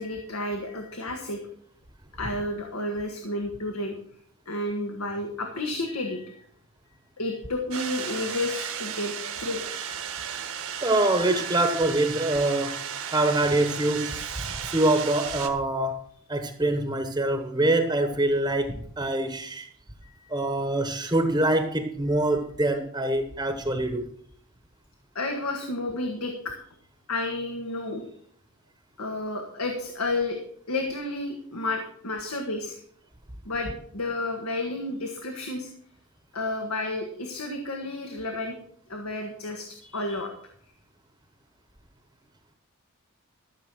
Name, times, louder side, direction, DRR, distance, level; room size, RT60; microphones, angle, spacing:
voice 1, 0.0-1.4 2.2-4.0 4.5-6.4 7.2-9.1 9.4-9.8 10.3-10.4 20.0-20.3 25.1-26.5 27.1-28.0 29.0-30.4 30.7-32.8 33.4-35.7 36.3-38.6 38.9-40.3, left 2 dB, 90° left, 3 dB, 1.6 m, -31 dB
sound 1, 7.7-15.5, right 8 dB, 80° right, 1.5 m, -34 dB
voice 2, 10.8-12.8 13.1-14.2 14.7-16.0 16.3-19.7 20.3-24.1, right 2 dB, 20° right, 6 dB, 1.0 m, -24 dB
13.5 x 7.2 x 6.2 m, 0.63 s
head